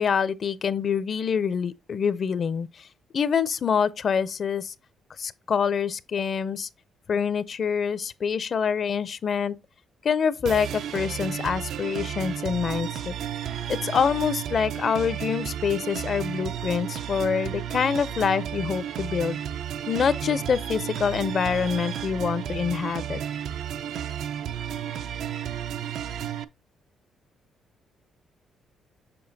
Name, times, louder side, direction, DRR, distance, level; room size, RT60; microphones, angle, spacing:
voice 1, 0.0-2.7 3.1-4.7 5.2-6.7 7.1-9.6 10.0-13.1 13.7-19.4 19.9-23.2, left 6 dB, 50° left, 0.4 m, -26 dB
sound 1, 10.5-26.4, right 9 dB, 75° right, 0.4 m, -32 dB
6.9 x 5.3 x 2.7 m
cardioid pair, 90°, 0 cm